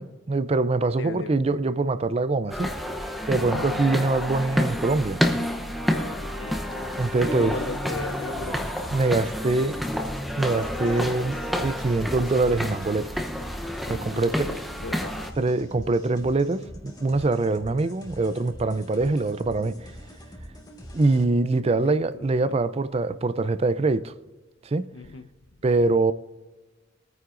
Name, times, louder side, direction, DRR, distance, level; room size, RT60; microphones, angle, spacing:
voice 1, 0.0-2.7 3.3-5.2 7.0-7.5 8.9-9.8 10.4-13.2 13.9-14.5 15.4-19.9 20.9-24.1 24.6-24.9 25.6-26.1, right 3 dB, 30° right, 0.4 m, -24 dB
voice 2, 1.0-1.4 3.4-3.9 5.9-6.8 7.1-8.9 10.1-10.2 13.8-15.2 21.6-22.6 24.9-25.3, left 3 dB, 70° left, 0.7 m, -38 dB
sound 1, 2.5-15.3, equal, ahead, 0.7 m, -29 dB
sound 2, 6.5-21.2, equal, 20° left, 1.6 m, -44 dB
23.0 x 9.3 x 2.5 m
head